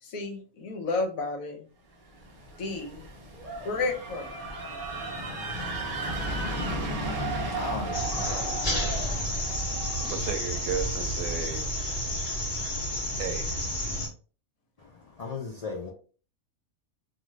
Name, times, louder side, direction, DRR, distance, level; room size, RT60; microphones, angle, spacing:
voice 1, 0.0-1.6 2.6-3.0 3.6-4.4 8.5-8.8 9.1-9.5 12.0-12.3 12.6-12.7, left 3 dB, 75° left, 1.1 m, -33 dB
sound 1, 2.2-12.0, right 2 dB, 45° right, 0.5 m, -35 dB
voice 2, 7.2-9.1 14.8-15.9, left 4 dB, 60° left, 0.4 m, -38 dB
sound 2, 7.9-14.1, equal, 40° left, 0.9 m, -30 dB
voice 3, 10.0-11.7 13.2-13.6, right 7 dB, 75° right, 0.9 m, -34 dB
2.6 x 2.5 x 3.1 m
omnidirectional pair, 1.5 m